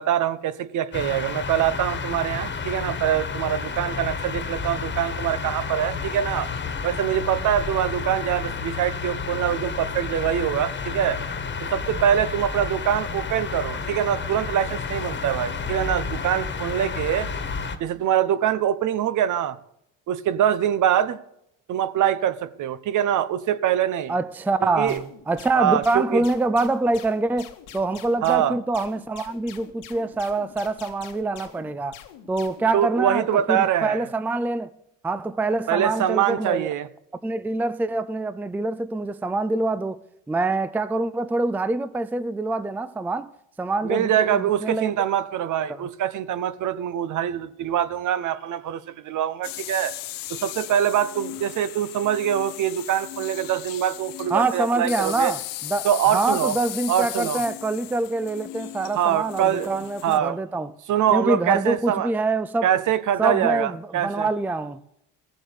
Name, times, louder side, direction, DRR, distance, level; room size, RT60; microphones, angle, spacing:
voice 1, 0.0-6.5 6.8-11.2 11.6-17.3 17.8-19.6 20.1-21.2 21.7-24.1 24.8-25.0 25.5-26.2 28.2-28.6 32.7-34.0 35.7-36.9 43.8-49.9 50.3-55.3 55.8-56.5 56.9-57.4 58.9-60.4 60.9-62.1 62.6-64.3, right 10 dB, 55° right, 1.0 m, -24 dB
sound 1, 0.9-17.8, left 5 dB, 30° left, 1.6 m, -31 dB
voice 2, 24.1-32.0 32.3-34.7 35.0-36.7 37.2-40.0 40.3-43.3 43.6-44.9 45.7-45.9 54.3-60.7 61.1-62.7 63.2-64.8, right 3 dB, 5° right, 0.4 m, -25 dB
sound 2, 24.9-32.7, left 10 dB, 85° left, 1.9 m, -45 dB
sound 3, 49.4-60.2, left 15 dB, 70° left, 0.8 m, -36 dB
15.5 x 7.7 x 6.7 m
cardioid pair, 100°, 35 cm